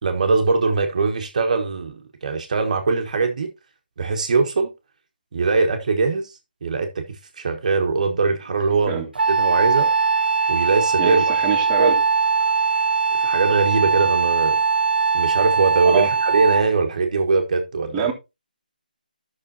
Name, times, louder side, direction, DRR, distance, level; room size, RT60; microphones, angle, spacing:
voice 1, 0.0-3.5 4.0-4.7 5.3-9.9 10.5-11.2 11.8-12.0 13.2-14.6 15.1-18.1, right 4 dB, 50° right, 1.3 m, -21 dB
Wind instrument woodwind instrument, 9.2-16.8, right 4 dB, 90° right, 0.4 m, -20 dB
voice 2, 11.0-12.0 15.8-16.1 17.9-18.1, right 8 dB, 15° right, 1.7 m, -25 dB
14.5 x 6.1 x 2.7 m
figure-of-eight pair, 155°, 5 cm